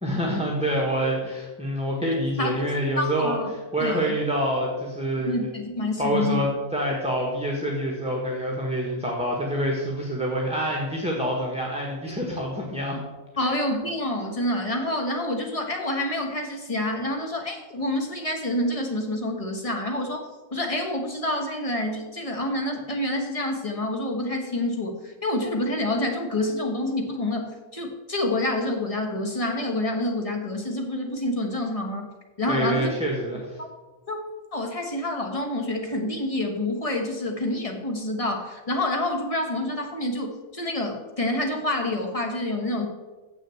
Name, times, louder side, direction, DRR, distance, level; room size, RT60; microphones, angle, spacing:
voice 1, 0.0-3.3 3.7-5.5 6.0-13.0 13.4-13.6 32.5-33.6, equal, 5° right, -2 dB, 1.3 m, -26 dB
voice 2, 3.0-3.5 3.8-4.1 5.3-6.5 13.4-20.2 20.5-32.1 32.4-32.9 33.6-33.7 34.1-34.2 34.5-42.9, left 1 dB, 25° left, 2 dB, 1.3 m, -27 dB
7.5 x 6.4 x 7.7 m, 1.2 s
omnidirectional pair, 1.6 m